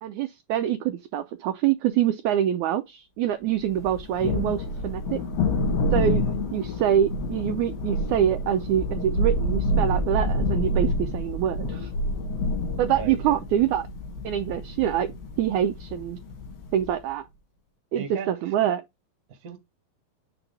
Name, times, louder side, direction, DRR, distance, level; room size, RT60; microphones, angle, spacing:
voice 1, 0.0-5.2 5.9-6.2 6.5-11.9 12.8-13.9 14.2-15.1 15.4-16.2 16.7-17.2 17.9-18.8, right 10 dB, 80° right, 1.8 m, -25 dB
Thunder, 3.7-16.9, left 1 dB, 85° left, 3.7 m, -28 dB
voice 2, 12.9-13.4 17.9-18.5 19.3-19.6, right 6 dB, 40° right, 1.3 m, -38 dB
8.1 x 3.5 x 3.3 m
omnidirectional pair, 4.0 m